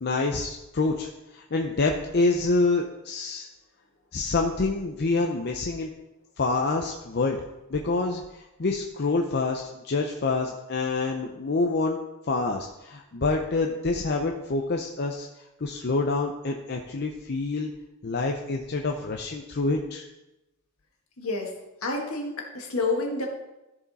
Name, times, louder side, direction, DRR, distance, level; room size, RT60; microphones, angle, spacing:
voice 1, 0.0-3.5 4.1-5.9 6.4-7.4 7.7-12.0 12.3-15.3 15.6-17.7 18.0-20.0, left 3 dB, 50° left, 2 dB, 0.6 m, -27 dB
voice 2, 21.2-21.5 21.8-23.3, left 3 dB, 70° left, 1 dB, 1.8 m, -29 dB
13.5 x 4.9 x 4.1 m, 0.98 s
head